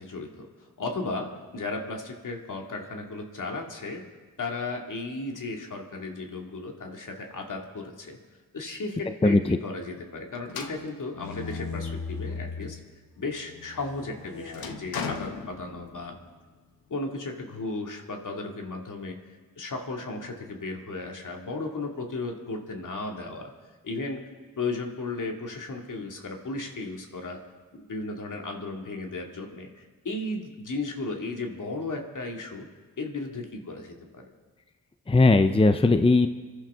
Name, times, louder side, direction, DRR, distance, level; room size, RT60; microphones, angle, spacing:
voice 1, 0.0-4.0 4.4-8.2 8.5-12.8 13.2-16.2 16.9-19.2 19.6-23.5 23.8-24.2 24.6-27.4 27.7-32.7 33.0-34.3, left 3 dB, 60° left, 1 dB, 2.4 m, -35 dB
voice 2, 9.2-9.6 35.1-36.3, left 3 dB, 15° left, 9 dB, 0.7 m, -19 dB
sound 1, 10.5-12.9 13.3-16.2, left 5 dB, 75° left, 1.3 m, -37 dB
25.5 x 12.0 x 3.7 m, 1.4 s
cardioid pair, 50°, 36 cm